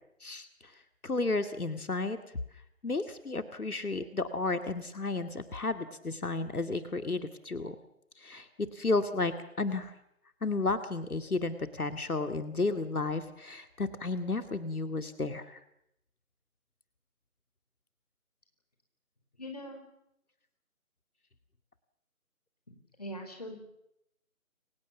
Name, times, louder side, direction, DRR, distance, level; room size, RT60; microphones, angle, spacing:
voice 1, 0.2-2.2 2.8-7.8 8.2-10.0 10.4-15.6, left 3 dB, 80° left, 9 dB, 2.4 m, -33 dB
voice 2, 19.4-19.8 23.0-23.7, equal, 25° left, 4 dB, 4.5 m, -41 dB
29.5 x 24.0 x 7.2 m, 0.81 s
figure-of-eight pair, 180°, 44 cm